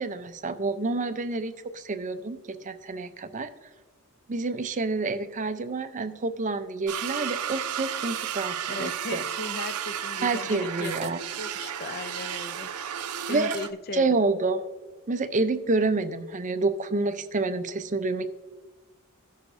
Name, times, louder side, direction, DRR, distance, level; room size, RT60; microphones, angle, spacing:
voice 1, 0.0-3.5 4.3-9.2 10.2-11.2 13.3-13.6 13.9-14.6 15.1-18.3, right 3 dB, 35° right, 9 dB, 0.5 m, -28 dB
sound 1, 6.9-13.7, right 9 dB, 90° right, 0.6 m, -33 dB
voice 2, 8.7-11.1 11.4-12.7 13.3-14.1, left 3 dB, 45° left, 12 dB, 0.4 m, -37 dB
17.0 x 6.5 x 2.6 m, 1.3 s
head